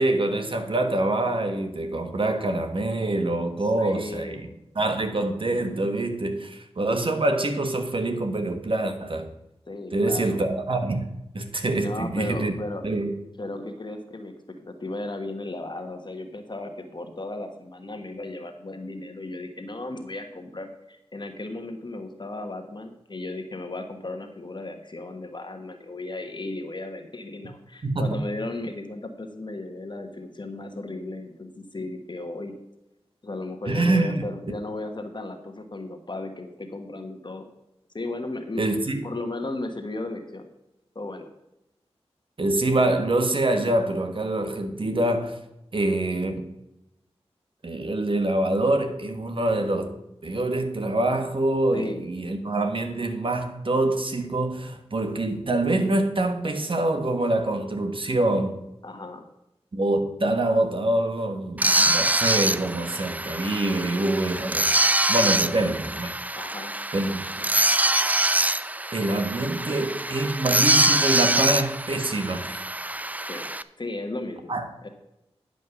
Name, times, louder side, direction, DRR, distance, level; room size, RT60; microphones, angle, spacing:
voice 1, 0.0-4.4 4.7-9.3 9.9-11.0 11.3-12.5 12.8-13.1 27.8-28.1 33.7-34.2 38.6-39.1 42.4-45.4 45.7-46.5 47.6-49.9 50.2-58.6 59.7-64.7 65.1-66.1 66.9-67.5 68.9-72.6 74.5-74.6, right 2 dB, 55° right, 1.5 m, -25 dB
voice 2, 3.6-4.5 9.7-10.4 11.7-12.9 13.4-14.3 14.6-32.5 33.2-37.5 37.9-38.6 39.0-40.5 40.9-41.3 51.7-52.0 58.8-59.3 66.3-66.7 73.3-73.5 73.8-74.5 74.8-74.9, left 2 dB, 45° left, 1.3 m, -35 dB
sound 1, 61.6-73.6, right 1 dB, 15° right, 0.5 m, -24 dB
10.5 x 5.3 x 6.8 m
cardioid pair, 45°, 11 cm